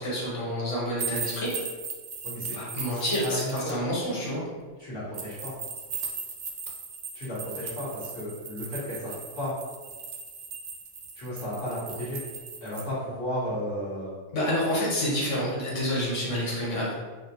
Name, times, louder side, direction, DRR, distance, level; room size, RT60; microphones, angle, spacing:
voice 1, 0.0-1.5 2.5-4.4 14.3-16.9, equal, 80° left, -6 dB, 1.3 m, -28 dB
sound 1, 1.0-3.7 5.1-12.8, right 5 dB, 75° right, 0.9 m, -38 dB
voice 2, 2.2-2.5 2.9-3.9 4.8-5.5 7.1-9.5 11.1-12.2 12.6-14.1, left 1 dB, 50° left, -11 dB, 1.5 m, -34 dB
4.2 x 2.1 x 2.8 m, 1.4 s
omnidirectional pair, 1.3 m